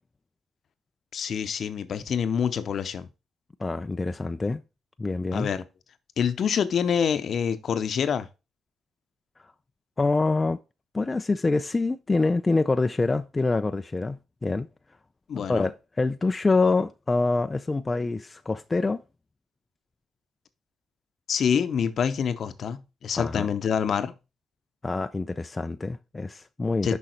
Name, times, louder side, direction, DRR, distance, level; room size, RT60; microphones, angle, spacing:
voice 1, 1.1-3.1 5.3-5.6 6.2-8.3 15.3-15.7 21.3-24.1 26.8-27.0, left 7 dB, 55° left, 0.8 m, -26 dB
voice 2, 3.6-4.6 5.0-5.5 10.0-10.6 10.9-14.7 15.3-19.0 23.1-23.5 24.8-27.0, left 3 dB, 20° left, 0.4 m, -26 dB
6.4 x 5.6 x 4.4 m
cardioid pair, 90°, 0 cm